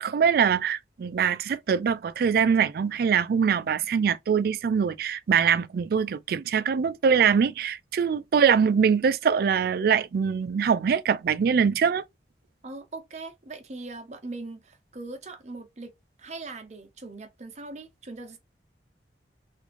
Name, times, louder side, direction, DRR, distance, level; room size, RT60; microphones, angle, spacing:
voice 1, 0.0-12.0, right 6 dB, 55° right, 0.3 m, -23 dB
voice 2, 12.6-15.9 16.2-18.4, right 3 dB, 40° right, 0.8 m, -40 dB
3.6 x 2.5 x 2.9 m
head